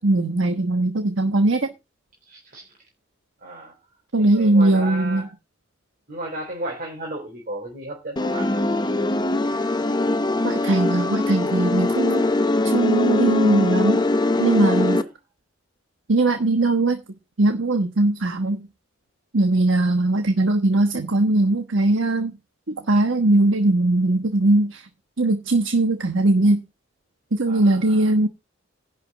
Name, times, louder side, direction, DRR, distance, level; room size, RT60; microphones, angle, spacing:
voice 1, 0.0-1.7 4.1-5.2 10.4-12.2 12.7-14.0 14.3-15.0 16.1-17.0 17.4-18.7 19.3-22.3 22.7-24.8 25.2-26.6 27.3-28.3, right 2 dB, 80° right, 6 dB, 1.2 m, -20 dB
voice 2, 2.2-2.7 3.4-3.8 4.2-5.3 6.1-8.6 14.7-15.1 27.5-28.1, right 1 dB, 45° right, 0 dB, 3.4 m, -35 dB
sound 1, 8.2-15.0, left 2 dB, 20° left, 0.7 m, -22 dB
11.0 x 5.3 x 7.2 m, 0.26 s
head